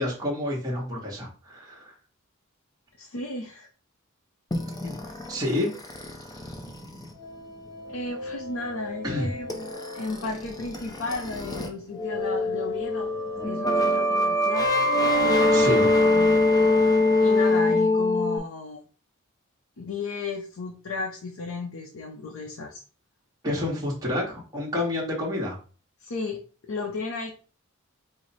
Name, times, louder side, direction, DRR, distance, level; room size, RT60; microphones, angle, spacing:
voice 1, 0.0-1.9 4.8-5.0 5.3-5.7 9.0-9.3 15.5-15.9 23.4-25.6, left 1 dB, 20° right, -4 dB, 1.1 m, -29 dB
voice 2, 3.0-3.7 5.0-5.1 7.9-13.1 13.4-14.7 15.6-16.5 17.2-18.8 19.8-22.8 26.0-26.4 26.7-27.3, left 3 dB, 80° left, 1 dB, 0.6 m, -34 dB
sound 1, 4.5-11.7 12.0-18.4, left 2 dB, 20° left, 0.6 m, -24 dB
4.8 x 2.1 x 4.0 m, 0.37 s
head